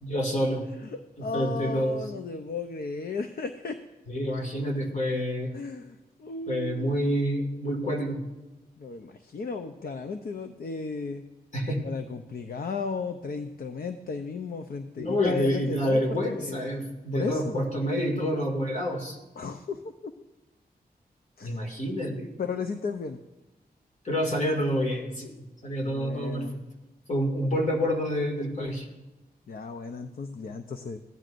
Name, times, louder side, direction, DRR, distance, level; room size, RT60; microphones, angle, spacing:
voice 1, 0.0-0.6 1.3-2.0 4.1-5.5 6.5-8.2 11.5-11.8 15.0-19.2 21.4-22.3 24.0-25.4 25.6-26.4 27.1-28.9, equal, 50° left, 0 dB, 2.2 m, -28 dB
voice 2, 0.8-3.8 5.5-7.0 8.8-11.2 11.8-16.6 17.1-17.7 19.4-20.1 21.4-21.6 22.4-23.2 25.9-26.6 29.5-31.0, left 4 dB, 65° left, 7 dB, 0.6 m, -35 dB
16.5 x 10.5 x 2.5 m, 1.1 s
wide cardioid pair, 100°, 16 cm